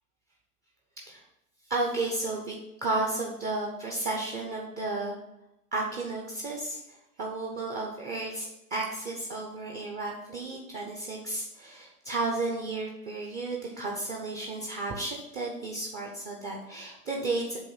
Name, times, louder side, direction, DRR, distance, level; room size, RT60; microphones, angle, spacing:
voice 1, 1.7-5.2 5.7-17.6, right 2 dB, 20° right, -1 dB, 0.7 m, -33 dB
7.6 x 2.6 x 5.4 m, 0.89 s
hypercardioid pair, 120°, 47 cm